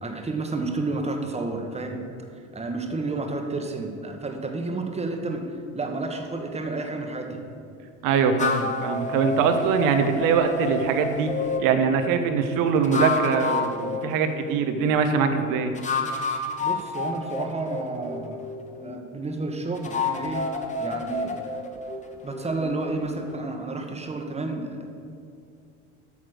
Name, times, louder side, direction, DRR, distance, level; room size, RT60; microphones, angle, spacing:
voice 1, 0.0-2.0 2.3-5.4 5.7-7.4 16.6-18.4 18.8-20.5 20.8-21.5 22.2-24.8, right 3 dB, 15° right, 3 dB, 1.4 m, -31 dB
voice 2, 8.0-11.3 11.6-15.7, right 5 dB, 55° right, 7 dB, 1.1 m, -22 dB
sound 1, 8.4-11.7 12.7-14.8 15.8-19.0 19.8-23.4, left 3 dB, 20° left, 1.2 m, -30 dB
8.7 x 6.1 x 6.5 m, 2.4 s
hypercardioid pair, 80°, 39 cm